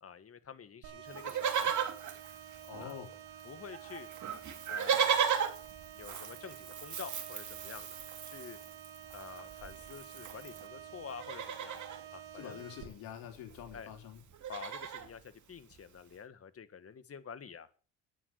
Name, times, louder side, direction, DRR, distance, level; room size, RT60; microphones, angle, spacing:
voice 1, 0.0-1.9 2.8-3.0 3.4-4.1 4.7-5.2 6.0-8.0 8.2-8.6 9.1-11.8 12.1-12.6 13.7-13.9 14.5-17.7, left 7 dB, 40° left, 12 dB, 1.7 m, -48 dB
sound 1, 0.8-12.8, right 10 dB, 80° right, 2.7 m, -50 dB
Livestock farm animals working animals, 1.1-3.1 3.4-3.5 3.7-10.7 11.1-12.0 13.2-13.3 13.5-13.8 14.1-15.1 15.7-15.8, right 7 dB, 55° right, 2.8 m, -36 dB
voice 2, 2.6-3.1 12.3-14.2, left 10 dB, 85° left, 3 dB, 4.0 m, -46 dB
11.0 x 9.4 x 8.1 m, 0.39 s
supercardioid pair, 80°, 35 cm